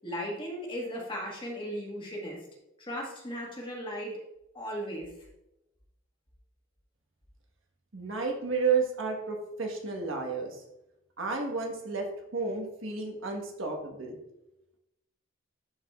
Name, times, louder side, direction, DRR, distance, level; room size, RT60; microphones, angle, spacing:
voice 1, 0.0-2.4 2.8-4.2 4.5-5.1, equal, 25° left, -2 dB, 1.7 m, -36 dB
voice 2, 7.9-10.6 11.2-12.1 12.3-14.2, right 4 dB, 80° right, 1 dB, 1.4 m, -31 dB
11.5 x 5.0 x 2.4 m, 0.91 s
head